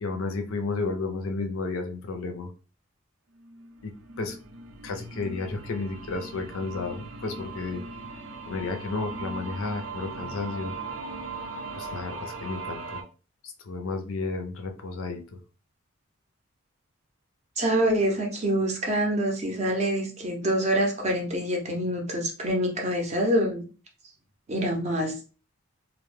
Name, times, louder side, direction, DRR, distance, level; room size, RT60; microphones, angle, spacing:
voice 1, 0.0-2.5 3.8-4.4 4.8-7.8 8.5-10.7 11.7-13.0 13.4-15.4, left 3 dB, 70° left, 5 dB, 0.5 m, -32 dB
sound 1, 3.4-13.0, right 3 dB, 80° right, 0.5 m, -39 dB
voice 2, 17.6-23.6 24.5-25.2, right 1 dB, 30° right, 2 dB, 0.5 m, -26 dB
2.1 x 2.1 x 3.1 m, 0.35 s
head